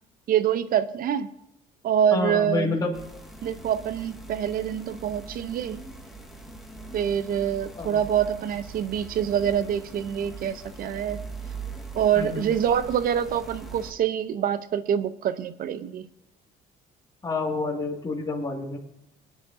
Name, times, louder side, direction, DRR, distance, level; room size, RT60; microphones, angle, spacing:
voice 1, 0.3-1.3 1.8-2.8 3.4-5.8 6.9-11.2 11.9-16.1, right 9 dB, 60° right, 13 dB, 0.7 m, -25 dB
voice 2, 2.1-2.9 7.8-8.0 12.1-12.4 17.2-18.8, left 3 dB, 20° left, -2 dB, 2.1 m, -28 dB
sound 1, 2.9-13.9, right 3 dB, ahead, 1.8 m, -41 dB
21.5 x 9.9 x 2.7 m, 0.87 s
cardioid pair, 110°, 17 cm